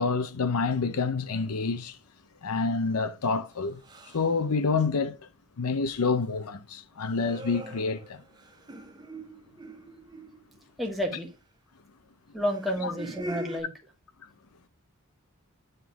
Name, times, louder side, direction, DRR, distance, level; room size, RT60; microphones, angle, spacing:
voice 1, 0.0-2.0 2.4-5.2 5.6-8.2 12.8-12.9, left 4 dB, 90° left, 0.6 m, -28 dB
sound 1, 1.4-1.7 3.8-4.4 7.0-10.6 12.4-13.6, right 1 dB, 20° right, 0.8 m, -42 dB
voice 2, 10.8-11.3 12.3-13.7, equal, ahead, 1.3 m, -30 dB
8.1 x 3.7 x 4.6 m
head